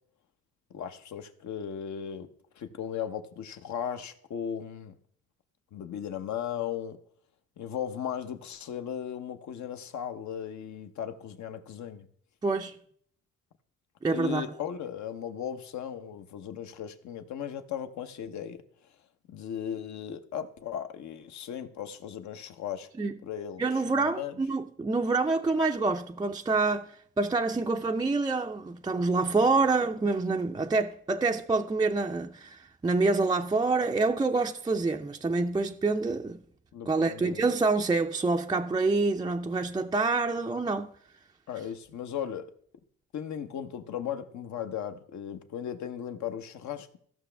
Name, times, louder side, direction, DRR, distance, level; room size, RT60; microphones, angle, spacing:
voice 1, 0.7-2.3 2.5-4.9 5.7-7.0 7.6-12.1 14.1-18.6 19.3-22.9 23.2-23.6 24.0-24.4 36.7-37.5 41.5-42.5 43.1-47.0, left 9 dB, 65° left, 0.9 m, -36 dB
voice 2, 12.4-12.7 14.0-14.4 23.0-23.1 23.6-36.4 36.9-40.9, right 3 dB, 15° right, 0.4 m, -27 dB
15.5 x 6.0 x 3.3 m
cardioid pair, 90°, 30 cm